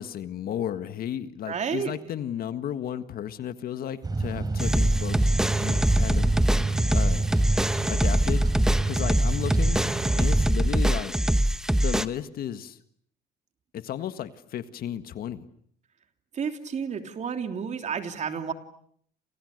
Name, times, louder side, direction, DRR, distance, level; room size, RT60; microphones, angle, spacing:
voice 1, 0.0-6.3 6.9-7.3 7.9-8.5 8.8-9.8 10.1-11.1 11.7-12.8 13.7-15.5, left 10 dB, 60° left, 11 dB, 1.7 m, -34 dB
voice 2, 1.5-1.9 16.3-18.5, right 7 dB, 45° right, 6 dB, 3.2 m, -31 dB
sound 1, 4.0-10.5, right 3 dB, 25° right, 4.6 m, -29 dB
sound 2, 4.6-12.1, right 1 dB, 5° right, 1.1 m, -23 dB
29.5 x 29.0 x 6.6 m, 0.65 s
cardioid pair, 110°, 17 cm